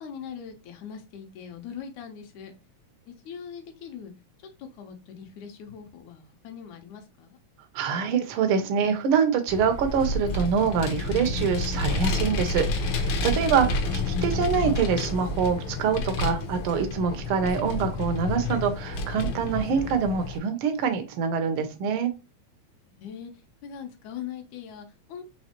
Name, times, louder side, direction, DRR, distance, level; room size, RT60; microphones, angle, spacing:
voice 1, 0.0-2.5 3.1-4.1 4.6-7.4 22.8-23.3 23.6-25.2, left 8 dB, 80° left, 2.3 m, -41 dB
voice 2, 7.7-22.1, right 6 dB, 80° right, 1.2 m, -25 dB
Vehicle, 9.5-20.4, left 2 dB, 65° left, 1.4 m, -29 dB
5.4 x 3.2 x 2.9 m
omnidirectional pair, 3.3 m